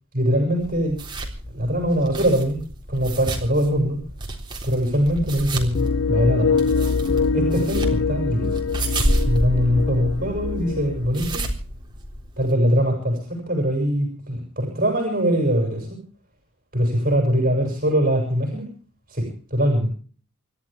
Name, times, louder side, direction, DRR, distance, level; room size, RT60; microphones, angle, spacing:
voice 1, 0.1-1.0 1.5-2.6 2.9-4.0 4.6-5.7 6.1-6.5 7.3-8.6 9.3-11.4 12.4-16.0 16.7-18.7 19.1-19.9, equal, 40° right, 2 dB, 6.7 m, -22 dB
sound 1, 0.6-12.5, right 1 dB, 20° right, 3.8 m, -30 dB
sound 2, 5.7-11.1, left 5 dB, 60° left, 0.6 m, -23 dB
28.5 x 12.5 x 3.6 m, 0.41 s
head